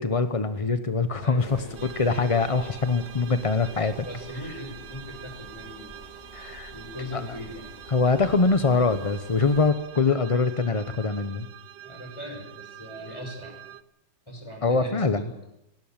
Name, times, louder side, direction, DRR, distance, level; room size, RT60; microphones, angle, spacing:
voice 1, 0.0-4.0 6.3-6.7 7.1-7.2 7.9-11.5 14.6-15.3, left 4 dB, 30° left, 10 dB, 0.6 m, -24 dB
voice 2, 1.2-1.8 4.1-6.1 6.7-7.7 11.8-13.6 14.3-15.3, left 1 dB, 15° left, 3 dB, 5.9 m, -39 dB
sound 1, 1.4-9.7, equal, 45° right, 6.0 m, -49 dB
sound 2, 1.8-13.8, right 11 dB, 85° right, 1.7 m, -45 dB
19.0 x 18.5 x 9.0 m, 0.84 s
omnidirectional pair, 1.9 m